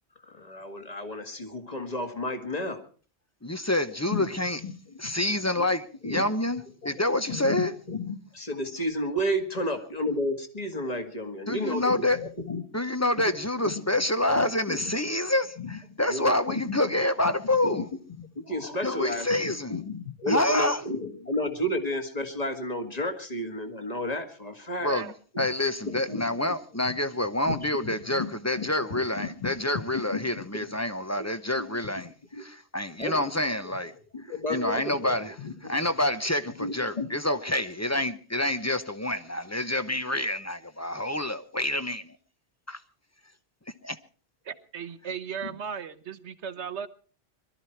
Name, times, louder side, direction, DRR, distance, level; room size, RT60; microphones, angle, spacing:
voice 1, 0.2-2.8 4.1-4.3 4.6-4.7 5.6-5.7 6.0-6.2 6.9-7.0 7.3-12.6 13.6-13.7 14.4-14.9 15.6-16.9 17.4-17.8 18.2-24.9 25.3-25.5 25.9-26.2 27.5-28.3 28.6-29.5 30.1-30.7 31.2-32.0 32.3-32.4 33.0-33.2 34.1-35.8 36.6-37.1 45.4-45.5, left 1 dB, 35° left, 2.1 m, -32 dB
voice 2, 3.4-4.6 5.0-7.7 11.5-12.2 12.7-17.9 18.8-19.7 20.3-20.8 24.8-33.9 34.5-35.3 35.6-42.2 42.7-42.8 43.8-44.0, left 1 dB, 15° left, 0.7 m, -27 dB
voice 3, 44.4-46.9, right 7 dB, 85° right, 1.3 m, -36 dB
22.0 x 13.0 x 4.5 m
omnidirectional pair, 1.1 m